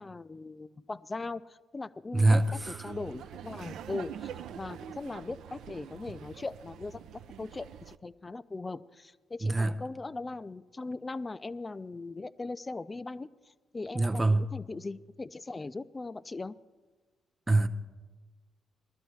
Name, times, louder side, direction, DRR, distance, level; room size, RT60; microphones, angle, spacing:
voice 1, 0.0-16.5, left 3 dB, 25° left, 0.4 m, -40 dB
voice 2, 2.1-2.9 9.4-9.8 13.9-14.5 17.5-17.7, right 2 dB, 15° right, 0.7 m, -25 dB
Laughter, 2.2-8.0, right 9 dB, 80° right, 0.3 m, -45 dB
19.5 x 12.5 x 3.1 m
cardioid pair, 90°, 0 cm